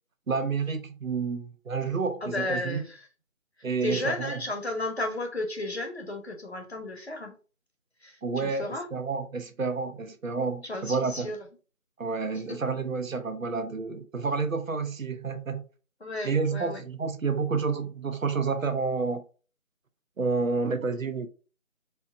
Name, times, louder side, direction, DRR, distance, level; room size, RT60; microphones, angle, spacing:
voice 1, 0.3-2.8 3.6-4.4 8.2-11.3 12.0-15.7 16.2-19.2 20.2-21.3, right 4 dB, 70° right, 0.7 m, -29 dB
voice 2, 2.2-3.1 3.8-7.3 8.0-8.9 10.6-11.4 12.5-12.6 16.0-16.8, left 2 dB, 50° left, 1.1 m, -33 dB
4.5 x 2.1 x 4.2 m
figure-of-eight pair, 165°, 41 cm